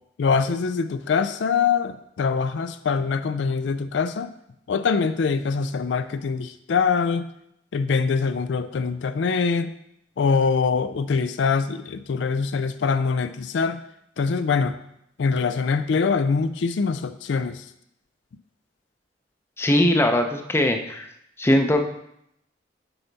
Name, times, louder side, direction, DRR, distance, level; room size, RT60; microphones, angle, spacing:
voice 1, 0.2-4.3 4.7-7.3 7.7-9.7 10.2-13.8 14.2-14.8 15.2-17.6, left 5 dB, 75° left, 11 dB, 0.4 m, -23 dB
voice 2, 19.6-21.1 21.4-21.9, left 1 dB, 15° left, 5 dB, 0.6 m, -20 dB
7.8 x 5.7 x 4.0 m, 0.77 s
head